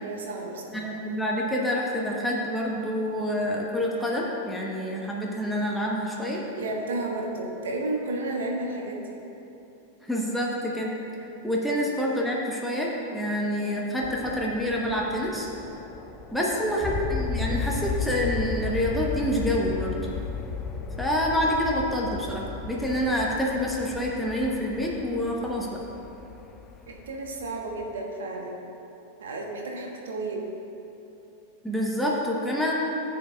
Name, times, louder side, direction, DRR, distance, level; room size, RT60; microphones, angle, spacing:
voice 1, 0.0-0.9 2.9-3.0 6.5-9.1 16.3-16.7 20.8-21.1 26.9-28.6 29.2-30.5, right 2 dB, 65° right, 0 dB, 1.2 m, -33 dB
voice 2, 0.7-6.4 10.0-15.5 16.3-19.9 21.0-25.8 31.6-32.7, equal, ahead, -3 dB, 1.0 m, -27 dB
sound 1, 14.0-28.0, left 5 dB, 20° left, 0.5 m, -35 dB
13.5 x 7.0 x 2.3 m, 2.9 s
figure-of-eight pair, 90°, 0 cm